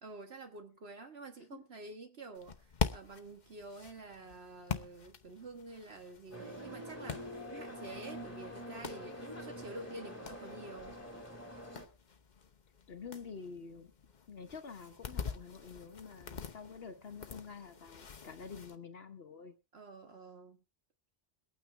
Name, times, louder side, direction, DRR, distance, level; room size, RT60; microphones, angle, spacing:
voice 1, 0.0-11.0 19.7-20.6, right 3 dB, 70° right, 1.7 m, -49 dB
sound 1, 2.3-18.8, left 6 dB, 45° left, 1.0 m, -44 dB
sound 2, 6.3-11.9, equal, 15° left, 2.0 m, -46 dB
voice 2, 12.9-13.9 14.3-19.5, left 5 dB, 65° left, 1.2 m, -48 dB
22.5 x 9.1 x 3.3 m
omnidirectional pair, 1.1 m